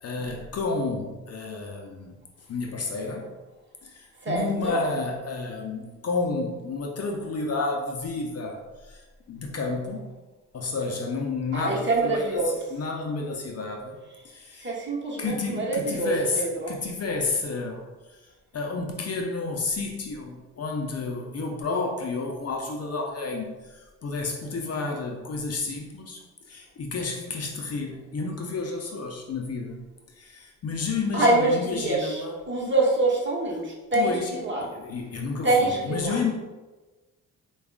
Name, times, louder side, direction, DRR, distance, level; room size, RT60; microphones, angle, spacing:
voice 1, 0.0-2.1 2.5-3.3 3.8-10.2 10.5-14.0 14.2-14.7 15.2-26.2 26.5-32.4 33.9-34.3 34.6-36.3, left 3 dB, 45° left, 1 dB, 0.6 m, -31 dB
voice 2, 4.2-4.8 11.5-12.5 14.6-16.7 31.1-34.1 34.4-34.6 35.4-36.2, right 2 dB, 30° right, -4 dB, 1.2 m, -25 dB
4.7 x 2.3 x 2.3 m, 1.2 s
supercardioid pair, 55°, 36 cm